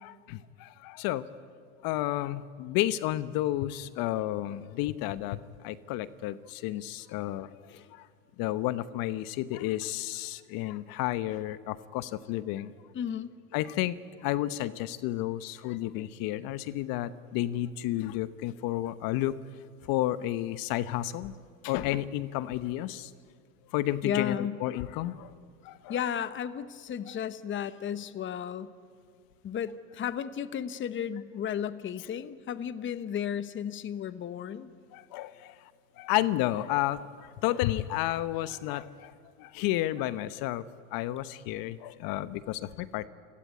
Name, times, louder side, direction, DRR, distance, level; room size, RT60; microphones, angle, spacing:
voice 1, 0.0-1.3 1.8-7.5 7.9-8.1 8.4-12.7 13.5-19.4 19.9-21.3 21.6-23.1 23.7-25.3 25.6-25.9 34.9-35.6 36.0-39.1 39.4-40.7 40.9-43.1, left 14 dB, 50° left, 15 dB, 1.0 m, -31 dB
voice 2, 12.9-13.3 24.0-24.6 25.9-28.7 29.4-34.7, left 9 dB, 25° left, 13 dB, 1.1 m, -34 dB
29.5 x 17.5 x 9.5 m, 2.2 s
hypercardioid pair, 105°, 45 cm